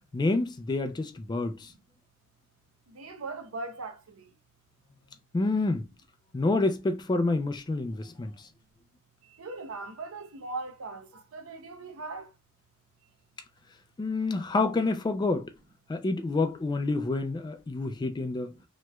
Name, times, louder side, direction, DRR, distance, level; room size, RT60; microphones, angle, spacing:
voice 1, 0.1-1.7 5.3-5.8 6.3-8.5 14.0-15.5 15.9-18.6, left 3 dB, 20° left, 0.3 m, -28 dB
voice 2, 2.9-4.0 9.4-12.3, right 3 dB, 70° right, 0.6 m, -39 dB
3.1 x 2.9 x 2.2 m
head